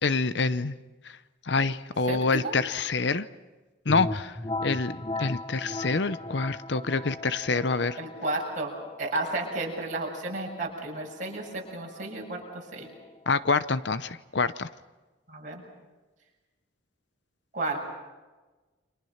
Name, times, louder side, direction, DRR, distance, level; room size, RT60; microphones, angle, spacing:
voice 1, 0.0-0.7 1.0-1.2 1.5-3.3 3.9-8.0 13.3-14.7, left 4 dB, 60° left, 14 dB, 0.8 m, -27 dB
voice 2, 2.1-2.6 8.0-12.9 15.3-15.6 17.5-17.9, right 2 dB, 40° right, -1 dB, 7.0 m, -33 dB
sound 1, 3.9-13.4, left 2 dB, 25° left, 0.7 m, -38 dB
29.5 x 26.0 x 5.8 m, 1.2 s
head